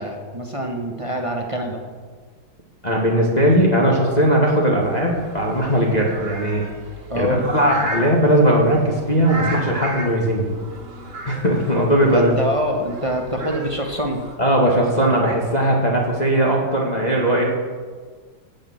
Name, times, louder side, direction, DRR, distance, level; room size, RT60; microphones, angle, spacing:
voice 1, 0.0-1.8 7.1-7.5 12.1-14.2 17.1-17.2, equal, 20° right, 2 dB, 0.9 m, -25 dB
voice 2, 2.8-6.6 7.2-10.5 11.3-12.3 14.4-17.4, right 1 dB, 20° left, -2 dB, 1.8 m, -18 dB
sound 1, 4.8-14.3, right 2 dB, 55° right, 2.4 m, -34 dB
17.0 x 6.5 x 7.7 m, 1.5 s
omnidirectional pair, 2.3 m